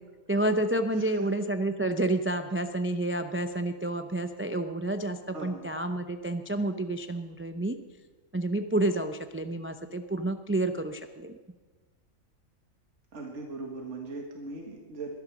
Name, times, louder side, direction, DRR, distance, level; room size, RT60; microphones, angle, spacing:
voice 1, 0.3-7.8 8.3-11.4, right 1 dB, 20° right, 8 dB, 0.4 m, -29 dB
voice 2, 1.0-1.3 5.3-5.7 13.1-15.2, right 3 dB, 60° right, 1 dB, 2.1 m, -39 dB
22.0 x 10.5 x 6.1 m, 1.3 s
omnidirectional pair, 1.4 m